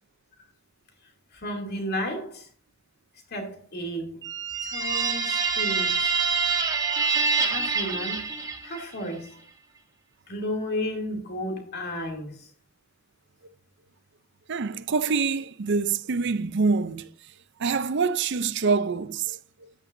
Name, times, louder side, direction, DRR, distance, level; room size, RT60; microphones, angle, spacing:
voice 1, 1.3-2.5 3.3-4.2 4.6-6.1 7.4-8.3 8.6-9.3 10.3-12.5, equal, 45° left, 2.7 m, -33 dB
sound 1, 4.2-8.9, right 5 dB, 15° right, 1.1 m, -26 dB
voice 2, 14.5-17.1 17.6-19.7, right 4 dB, 55° right, 0.5 m, -26 dB
13.0 x 10.0 x 2.6 m
head